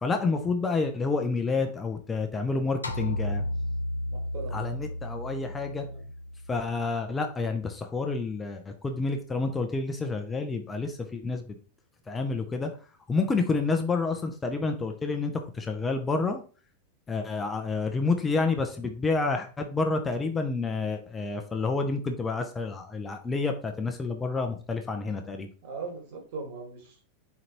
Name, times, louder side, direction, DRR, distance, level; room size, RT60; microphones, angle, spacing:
voice 1, 0.0-3.4 4.5-5.9 6.5-11.4 12.1-12.7 13.1-16.4 17.1-25.5, left 3 dB, 15° left, 5 dB, 0.6 m, -29 dB
sound 1, 2.8-7.2, left 1 dB, 80° left, 0.5 m, -34 dB
voice 2, 4.1-4.6 5.7-6.0 25.6-27.0, right 4 dB, 50° right, 0 dB, 1.9 m, -40 dB
4.6 x 3.7 x 3.0 m, 0.39 s
figure-of-eight pair, 90°, 0 cm